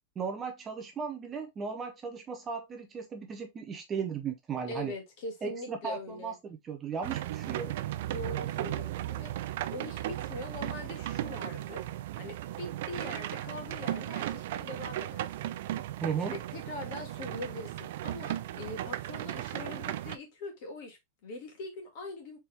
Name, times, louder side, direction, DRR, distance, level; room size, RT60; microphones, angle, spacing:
voice 1, 0.2-4.9 5.4-7.7 16.0-16.4, right 6 dB, 15° right, 0.6 m, -36 dB
voice 2, 4.7-6.4 8.1-11.9 12.1-15.5 16.2-22.4, left 2 dB, 40° left, 1.8 m, -42 dB
sound 1, 7.0-20.2, right 13 dB, 55° right, 0.4 m, -36 dB
4.4 x 3.4 x 3.3 m
supercardioid pair, 175°, 0 cm